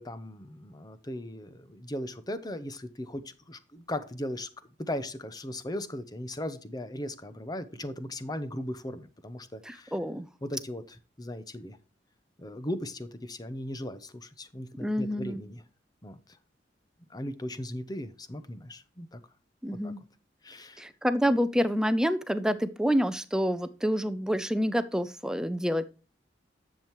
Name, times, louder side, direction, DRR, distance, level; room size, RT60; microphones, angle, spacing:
voice 1, 0.0-4.5 4.9-9.9 10.4-11.8 12.4-15.6 16.0-16.2 17.1-19.2 19.7-19.9 20.4-20.8, left 1 dB, 25° left, 12 dB, 0.8 m, -38 dB
voice 2, 9.6-10.3 14.8-15.4 19.6-20.0 20.8-25.9, equal, 5° right, 12 dB, 0.5 m, -28 dB
10.5 x 7.5 x 3.0 m, 0.35 s
head